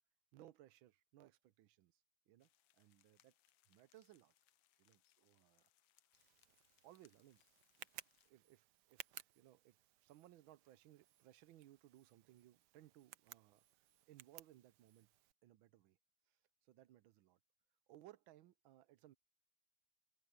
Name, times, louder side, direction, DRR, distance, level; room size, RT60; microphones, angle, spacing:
voice 1, 0.3-3.3 3.7-4.3 4.8-5.7 6.8-7.4 7.8-7.9 8.2-13.6 14.1-15.1 15.4-16.0 16.3-17.4 17.9-19.1, right 14 dB, 90° right, 1.5 m, -64 dB
sound 1, 2.4-8.3, left 13 dB, 80° left, 1.5 m, -77 dB
Tick, 6.1-15.3, right 12 dB, 65° right, 1.2 m, -60 dB
omnidirectional pair, 2.1 m